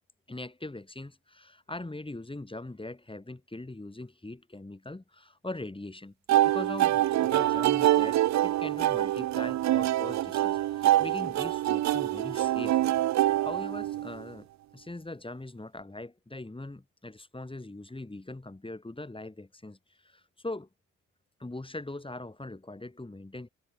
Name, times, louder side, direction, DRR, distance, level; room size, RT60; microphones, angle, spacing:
voice 1, 0.3-6.1 6.4-12.8 13.1-14.5 14.7-20.7 21.4-23.5, left 2 dB, 15° left, 6.6 m, -41 dB
sound 1, 6.3-14.2, right 14 dB, 55° right, 0.6 m, -25 dB
supercardioid pair, 55°, 33 cm